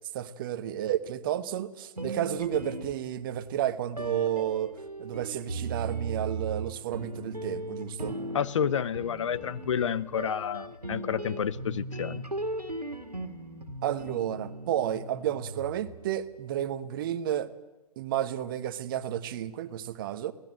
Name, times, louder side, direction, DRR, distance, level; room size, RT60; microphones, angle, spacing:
voice 1, 0.1-4.7 5.0-8.2 13.8-17.5 18.0-20.3, right 11 dB, 35° right, 14 dB, 1.0 m, -31 dB
sound 1, 2.0-3.4 4.0-16.2, right 2 dB, 90° right, 2.0 m, -38 dB
voice 2, 8.3-12.2, left 8 dB, 50° left, 17 dB, 0.7 m, -30 dB
24.0 x 18.0 x 7.7 m, 1.0 s
figure-of-eight pair, 120°, 20 cm